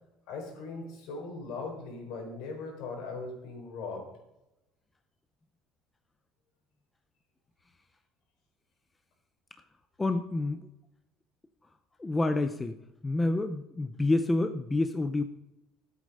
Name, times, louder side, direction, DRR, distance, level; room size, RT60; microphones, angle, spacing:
voice 1, 0.3-4.1, left 3 dB, 70° left, 2 dB, 4.1 m, -39 dB
voice 2, 10.0-10.7 12.0-12.8 13.0-15.2, left 2 dB, 10° left, 8 dB, 0.5 m, -28 dB
12.5 x 8.3 x 5.4 m, 0.90 s
cardioid pair, 160°, 0 cm